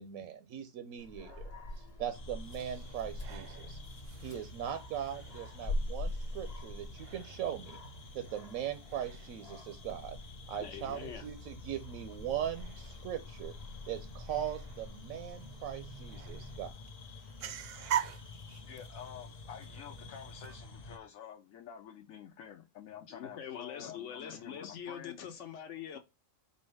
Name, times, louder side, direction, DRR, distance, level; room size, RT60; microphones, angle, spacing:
voice 1, 0.0-1.5 1.8-3.8 4.2-7.8 8.1-10.2 10.5-13.5 13.9-16.7, right 10 dB, 85° right, 1.0 m, -40 dB
Dog, 1.0-16.7, left 1 dB, 35° left, 0.9 m, -44 dB
sound 1, 2.1-21.0, left 3 dB, 50° left, 0.5 m, -50 dB
sound 2, 2.4-20.5, right 10 dB, 65° right, 0.6 m, -46 dB
voice 2, 10.6-11.3 23.1-26.0, left 8 dB, 65° left, 1.0 m, -43 dB
voice 3, 18.7-25.2, left 8 dB, 90° left, 1.1 m, -49 dB
4.6 x 2.7 x 3.2 m
omnidirectional pair, 1.4 m